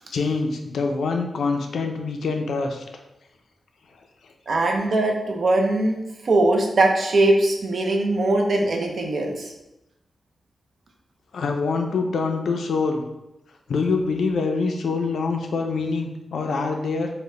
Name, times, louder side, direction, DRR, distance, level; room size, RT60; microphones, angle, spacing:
voice 1, 0.1-2.8 4.2-4.3 11.3-13.0 13.7-17.1, left 4 dB, 80° left, 3 dB, 0.4 m, -25 dB
voice 2, 4.5-6.0 6.2-9.5, right 2 dB, 55° right, 2 dB, 0.5 m, -21 dB
3.9 x 2.1 x 3.2 m, 0.93 s
wide cardioid pair, 165°, 0 cm